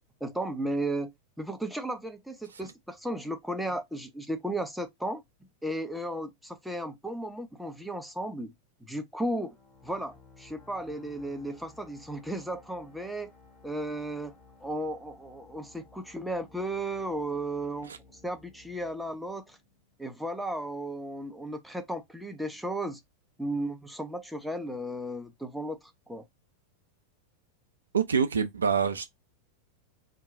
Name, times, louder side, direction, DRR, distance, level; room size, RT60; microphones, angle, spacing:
voice 1, 0.2-1.1 1.4-5.2 5.6-8.5 8.8-9.5 9.8-13.3 13.6-14.3 14.6-17.9 18.2-19.6 20.0-23.0 23.4-25.8 26.1-26.3, right 1 dB, ahead, 0.6 m, -34 dB
sound 1, 9.3-20.6, left 4 dB, 30° left, 1.6 m, -57 dB
voice 2, 27.9-29.1, right 6 dB, 70° right, 0.5 m, -26 dB
2.9 x 2.3 x 3.6 m
figure-of-eight pair, 90°, 0 cm